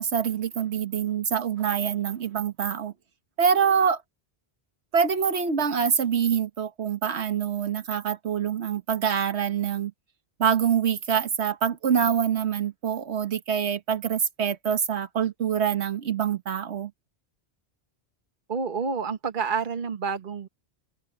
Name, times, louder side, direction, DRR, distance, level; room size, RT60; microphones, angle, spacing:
voice 1, 0.0-2.9 3.4-4.0 4.9-9.9 10.4-16.9, right 7 dB, 85° right, 1.5 m, -25 dB
voice 2, 18.5-20.5, right 5 dB, 50° right, 1.4 m, -29 dB
open air
omnidirectional pair, 1.1 m